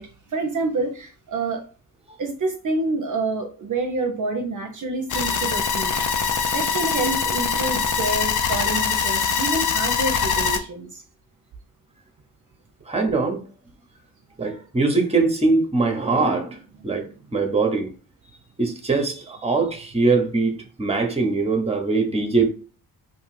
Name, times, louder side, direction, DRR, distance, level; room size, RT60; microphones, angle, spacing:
voice 1, 0.0-1.6 2.2-6.3 6.5-11.0, right 3 dB, 50° right, 0.6 m, -28 dB
sound 1, 5.1-10.6, left 6 dB, 50° left, 0.5 m, -23 dB
voice 2, 12.9-13.4 14.4-16.6 16.8-17.9 18.6-22.5, right 3 dB, 15° right, 0.8 m, -22 dB
2.6 x 2.3 x 3.2 m
supercardioid pair, 45°, 40 cm